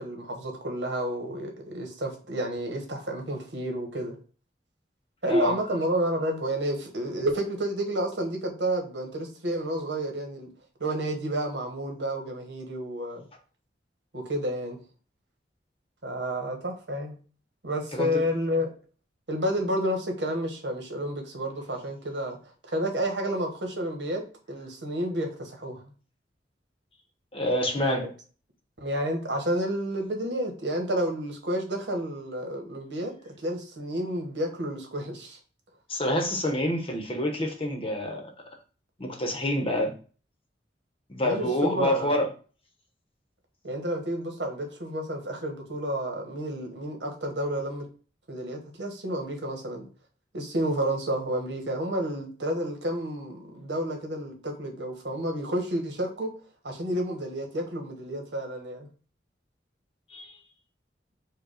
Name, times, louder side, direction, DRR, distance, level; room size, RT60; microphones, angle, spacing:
voice 1, 0.0-4.2 5.2-10.5 10.8-13.2 14.1-14.8 16.0-17.2 17.6-18.7 19.3-22.4 22.6-24.2 24.5-25.8 27.8-28.1 28.8-33.1 33.4-35.4 41.2-42.1 43.6-47.8 48.3-49.9 50.3-56.3 56.6-58.9, right 1 dB, 80° right, 3 dB, 1.2 m, -30 dB
voice 2, 17.9-18.2 27.3-28.1 35.9-38.3 39.0-40.0 41.1-42.3 60.1-60.4, left 1 dB, 30° left, 4 dB, 0.9 m, -27 dB
4.7 x 2.3 x 4.9 m, 0.38 s
head